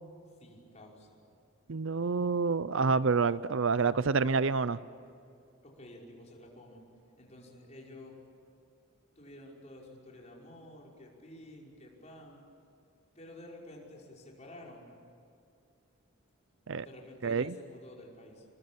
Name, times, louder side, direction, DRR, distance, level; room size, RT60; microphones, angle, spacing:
voice 1, 0.4-1.2 5.6-6.8 7.2-8.2 9.2-12.4 13.2-14.9 16.8-18.5, left 1 dB, 30° left, -2 dB, 5.4 m, -51 dB
voice 2, 1.7-4.8 16.7-16.9 17.2-17.5, right 4 dB, 60° right, 17 dB, 0.6 m, -28 dB
29.0 x 23.5 x 8.7 m, 2.6 s
head